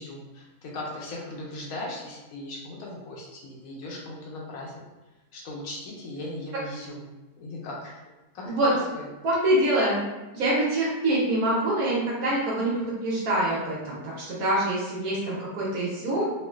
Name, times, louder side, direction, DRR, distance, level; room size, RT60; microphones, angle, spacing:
voice 1, 0.0-4.8 5.3-7.0 7.4-8.0 8.3-8.5 8.9-9.1, left 1 dB, 70° left, -3 dB, 1.0 m, -38 dB
voice 2, 9.2-10.0 10.3-16.3, right 1 dB, 70° right, -5 dB, 1.2 m, -25 dB
3.1 x 2.4 x 2.3 m, 1.1 s
omnidirectional pair, 1.6 m